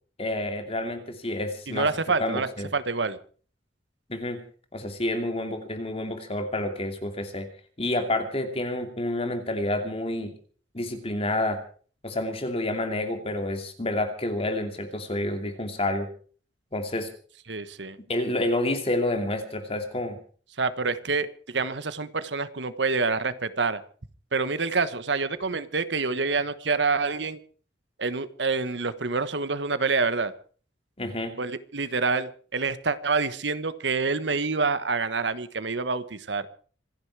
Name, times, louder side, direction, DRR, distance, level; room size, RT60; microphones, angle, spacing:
voice 1, 0.2-1.9 2.2-2.7 4.1-4.4 4.7-7.5 7.8-10.3 10.7-11.6 12.0-16.1 16.7-17.1 18.1-20.2 31.0-31.3, left 1 dB, 35° left, 6 dB, 2.8 m, -29 dB
voice 2, 1.7-3.2 17.5-18.0 20.6-23.8 24.3-27.4 28.0-30.3 31.4-36.5, right 4 dB, 70° right, 13 dB, 1.3 m, -27 dB
26.5 x 10.5 x 4.8 m, 0.42 s
head